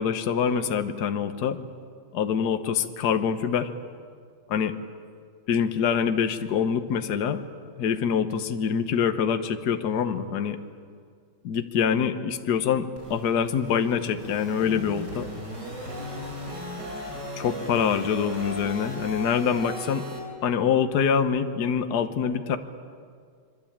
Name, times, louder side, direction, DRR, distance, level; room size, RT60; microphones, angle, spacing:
voice 1, 0.0-1.6 2.1-3.7 4.5-4.7 5.5-7.4 7.8-10.6 11.4-15.3 17.4-20.1 20.4-22.6, left 7 dB, 55° left, 9 dB, 1.6 m, -25 dB
sound 1, 13.0-20.2, equal, 55° right, 5.5 m, -37 dB
26.0 x 24.0 x 8.8 m, 2.1 s
omnidirectional pair, 2.2 m